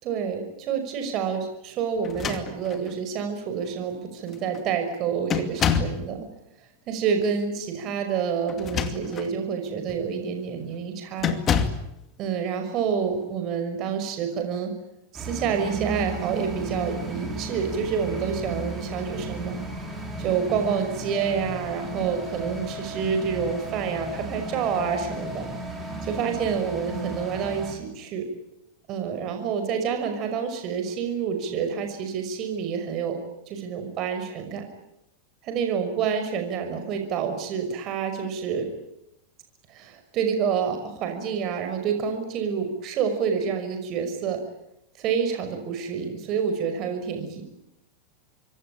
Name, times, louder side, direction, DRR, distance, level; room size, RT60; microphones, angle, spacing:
voice 1, 0.0-6.3 6.9-11.3 12.2-14.7 15.1-19.6 20.2-25.5 26.0-28.3 28.9-33.2 33.5-34.7 35.4-38.7 39.7-44.4 45.0-47.4, right 7 dB, 40° right, 6 dB, 5.9 m, -28 dB
sound 1, 2.0-2.9 3.8-3.9 4.3-4.6 5.3-6.0 8.5-9.3 9.9-10.1 11.2-11.9, left 7 dB, 25° left, 2.4 m, -27 dB
sound 2, 15.1-27.7, right 1 dB, 10° right, 6.9 m, -34 dB
26.0 x 23.5 x 8.7 m, 0.85 s
supercardioid pair, 150°, 0 cm